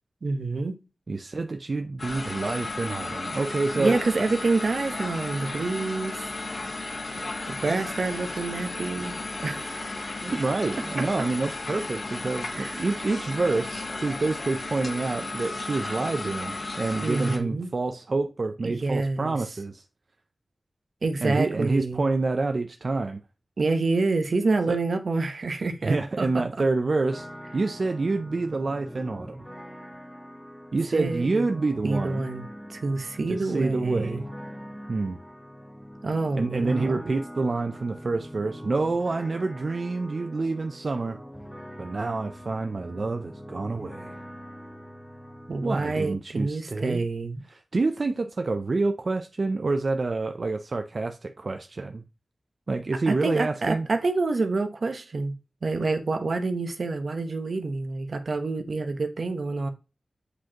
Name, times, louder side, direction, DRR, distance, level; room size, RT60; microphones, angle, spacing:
voice 1, 0.2-0.8 3.7-6.3 7.5-9.9 10.3-10.4 12.5-12.8 17.0-17.7 18.6-19.3 21.0-22.1 23.6-26.4 30.9-31.5 31.8-32.4 32.7-34.2 36.0-37.0 45.5-47.4 53.1-55.3 55.6-59.7, right 3 dB, 75° right, 0.9 m, -27 dB
voice 2, 1.1-4.0 10.2-19.9 21.2-23.2 24.7-24.8 25.8-27.3 27.5-29.4 30.7-32.3 33.3-34.3 34.9-35.2 36.4-41.2 41.8-44.2 45.6-47.0 47.5-52.0 52.7-53.9, right 3 dB, 60° right, 0.5 m, -28 dB
sound 1, 2.0-17.4, left 2 dB, 65° left, 1.9 m, -34 dB
sound 2, 26.9-46.1, equal, 5° right, 1.3 m, -42 dB
8.1 x 5.0 x 2.9 m
wide cardioid pair, 70°, 0 cm